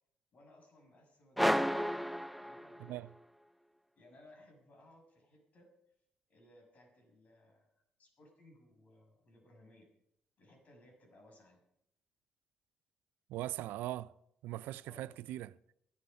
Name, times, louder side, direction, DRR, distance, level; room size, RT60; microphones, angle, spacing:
voice 1, 0.3-1.8 2.4-3.0 4.0-5.7 6.3-7.7 8.0-9.9 10.4-11.6 14.8-15.1, left 1 dB, 50° left, 6.7 m, -62 dB
sound 1, 1.4-3.1, equal, ahead, 0.4 m, -32 dB
voice 2, 13.3-14.1 14.4-15.6, right 15 dB, 80° right, 0.4 m, -40 dB
15.0 x 11.5 x 5.4 m
supercardioid pair, 60°, 3 cm